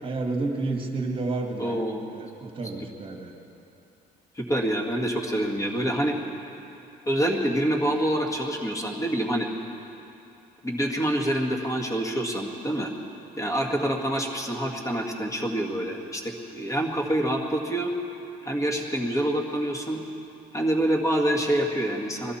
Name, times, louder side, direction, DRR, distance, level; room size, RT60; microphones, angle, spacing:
voice 1, 0.0-1.9 2.1-3.3, right 3 dB, 30° right, 3 dB, 1.8 m, -30 dB
voice 2, 1.6-2.0 2.6-2.7 4.4-6.2 7.1-9.5 10.6-12.9 13.4-17.9 18.4-20.0 20.5-22.3, right 1 dB, 20° left, 1 dB, 1.9 m, -26 dB
21.5 x 14.5 x 4.3 m, 2.8 s
cardioid pair, 110°, 17 cm